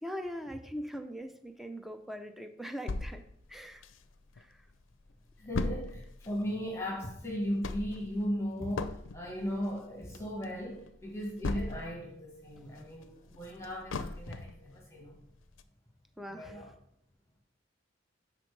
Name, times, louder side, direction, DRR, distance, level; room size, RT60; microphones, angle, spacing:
voice 1, 0.0-3.2 3.5-3.8 4.4-4.7 16.2-16.8, equal, ahead, 6 dB, 0.6 m, -41 dB
sound 1, 2.9-4.4 4.8-4.9 5.1-12.1 12.5-14.6 15.1-15.2 15.6-15.7, left 3 dB, 85° left, 0.5 m, -38 dB
voice 2, 5.4-15.2 16.3-16.7, equal, 15° left, -1 dB, 1.4 m, -37 dB
11.5 x 4.3 x 3.3 m, 0.73 s
head